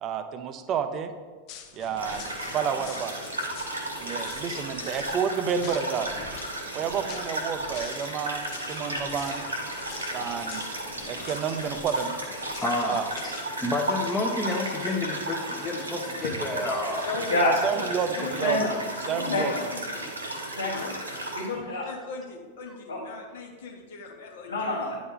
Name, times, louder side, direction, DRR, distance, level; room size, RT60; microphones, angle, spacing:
voice 1, 0.0-1.1 1.7-3.1 4.0-6.1 6.7-9.5 10.1-10.7 11.1-12.1 12.9-13.0 17.4-18.6 19.1-19.5, right 7 dB, 35° right, 9 dB, 0.5 m, -30 dB
sound 1, 1.5-13.4, left 8 dB, 40° left, 0.6 m, -45 dB
sound 2, 2.0-21.5, right 1 dB, 80° right, 1.0 m, -34 dB
voice 2, 12.6-13.3 13.6-17.0 18.4-18.5, left 2 dB, 10° left, -2 dB, 0.7 m, -30 dB
voice 3, 16.2-16.8 17.0-17.3 17.6-17.8 18.1-18.6 19.0-20.0 20.7-20.9 21.8-24.6, left 4 dB, 60° left, 1 dB, 1.0 m, -38 dB
voice 4, 20.5-20.8 21.3-21.9 22.9-23.0 24.5-25.0, left 2 dB, 75° left, -5 dB, 1.1 m, -27 dB
9.4 x 4.0 x 3.6 m, 1.4 s
figure-of-eight pair, 90°, 0 cm